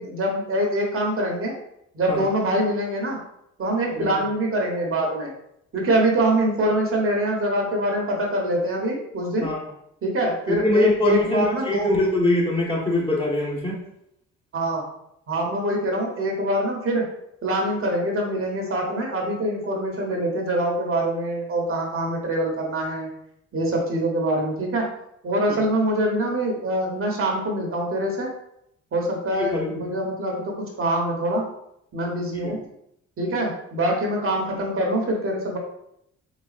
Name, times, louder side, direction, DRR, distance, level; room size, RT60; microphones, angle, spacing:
voice 1, 0.0-1.5 1.9-3.2 3.6-5.3 5.7-9.5 10.0-11.9 14.5-14.8 15.3-17.0 17.4-23.1 23.5-24.8 25.2-28.3 28.9-31.4 31.9-32.6 33.2-35.6, right 1 dB, 45° right, 0 dB, 1.0 m, -24 dB
voice 2, 10.5-13.8 29.4-29.9 32.3-32.5, left 1 dB, 20° left, -4 dB, 1.2 m, -23 dB
4.0 x 3.3 x 2.5 m, 0.77 s
cardioid pair, 90°, 30 cm